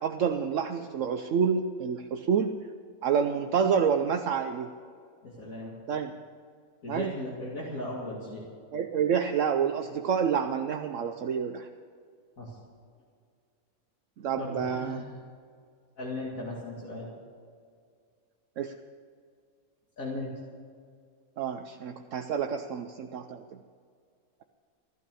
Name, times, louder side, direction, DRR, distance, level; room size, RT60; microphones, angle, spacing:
voice 1, 0.0-2.6 3.0-4.7 5.9-6.1 6.9-7.2 8.7-11.7 14.2-15.0 18.6-18.8 21.4-23.4, right 7 dB, 65° right, 6 dB, 1.0 m, -28 dB
voice 2, 5.2-5.8 6.8-8.4 12.4-12.6 14.4-15.2 16.0-17.1 20.0-20.3, left 1 dB, 70° left, -5 dB, 2.7 m, -37 dB
15.5 x 12.0 x 6.9 m, 2.1 s
omnidirectional pair, 1.5 m